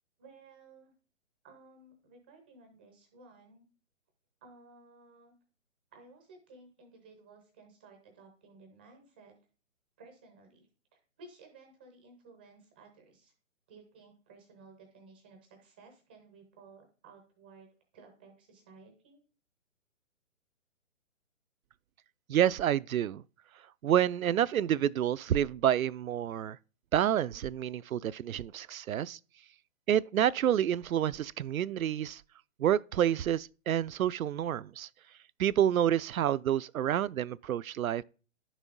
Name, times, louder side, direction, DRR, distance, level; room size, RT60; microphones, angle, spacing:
voice 1, 0.2-0.9 1.4-3.7 4.4-5.3 5.9-9.3 10.0-13.3 13.7-17.7 17.9-19.2, right 3 dB, 10° right, 0.5 m, -56 dB
voice 2, 22.3-23.2 23.8-26.6 26.9-29.2 29.9-32.2 32.6-34.9 35.4-38.0, right 10 dB, 85° right, 0.5 m, -28 dB
11.0 x 6.1 x 3.8 m
hypercardioid pair, 150°, 40 cm